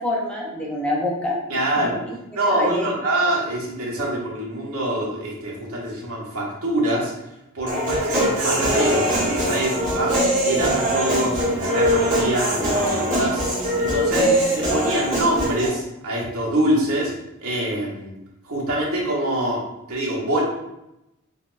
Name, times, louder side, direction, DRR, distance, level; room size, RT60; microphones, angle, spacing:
voice 1, 0.0-1.4 1.8-1.9 2.3-2.9 14.0-14.5, left 1 dB, 5° left, -4 dB, 0.5 m, -26 dB
voice 2, 1.5-2.0 2.3-7.1 7.5-10.1 10.4-13.4 13.8-17.1 17.4-18.1 18.4-19.6 19.9-20.4, right 1 dB, 75° right, -3 dB, 1.0 m, -25 dB
Human voice, 7.7-15.7, equal, 35° right, 1.2 m, -22 dB
3.9 x 2.2 x 2.5 m, 0.89 s
head